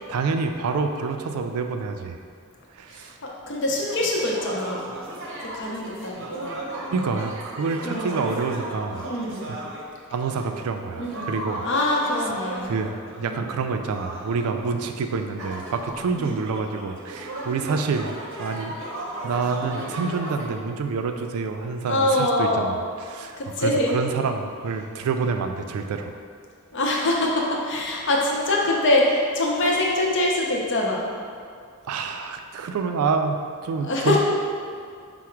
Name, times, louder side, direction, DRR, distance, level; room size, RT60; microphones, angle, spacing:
voice 1, 0.1-2.2 2.7-3.2 6.9-9.1 9.5-9.6 10.1-11.7 12.7-18.1 18.4-18.7 19.2-26.1 31.9-34.2, right 4 dB, 85° right, 5 dB, 0.3 m, -27 dB
voice 2, 2.9-4.9 5.4-6.6 7.8-8.2 9.1-9.5 11.0-11.3 11.6-12.7 13.2-13.4 16.1-16.4 21.9-22.7 23.4-24.0 26.7-31.1 33.8-34.2, left 1 dB, 55° left, -2 dB, 0.6 m, -24 dB
sound 1, 3.6-9.9 10.2-20.5, right 1 dB, 60° right, 0.7 m, -36 dB
4.7 x 2.1 x 4.4 m, 2.3 s
head